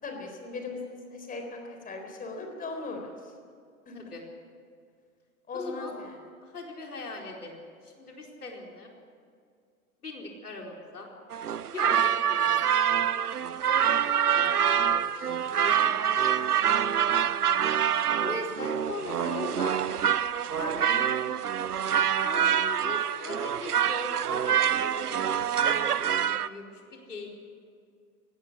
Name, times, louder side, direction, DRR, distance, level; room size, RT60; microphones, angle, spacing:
voice 1, 0.0-3.3 3.9-4.0 5.5-6.2 11.9-12.0 20.8-21.0, left 3 dB, 20° left, 4 dB, 4.0 m, -39 dB
voice 2, 5.5-5.9 6.5-7.6 7.8-8.9 10.0-11.1 11.7-12.5 13.9-16.9 18.2-19.8 20.6-21.0 22.1-25.8 26.2-27.3, left 3 dB, 80° left, 0 dB, 4.7 m, -40 dB
sound 1, 11.3-26.5, right 9 dB, 85° right, 0.8 m, -26 dB
19.0 x 17.0 x 9.9 m, 2.2 s
figure-of-eight pair, 105°, 44 cm